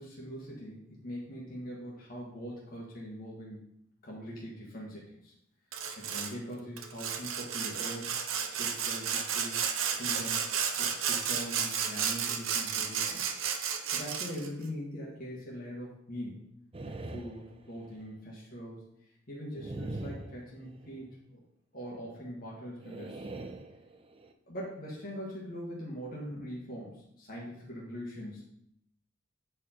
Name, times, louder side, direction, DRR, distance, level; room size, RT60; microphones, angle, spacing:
voice 1, 0.0-3.7 4.0-5.3 6.0-8.1 8.4-9.6 10.0-10.5 10.8-13.3 13.9-16.5 16.8-21.1 21.3-21.4 21.7-23.3 24.5-28.4, equal, 50° left, -4 dB, 1.7 m, -42 dB
Sawing, 5.7-6.3 6.8-14.5, right 7 dB, 85° right, 0.8 m, -32 dB
sound 1, 16.7-18.1 19.5-21.1 22.8-24.3, right 2 dB, 30° right, 0.6 m, -43 dB
8.5 x 4.6 x 4.4 m, 0.76 s
head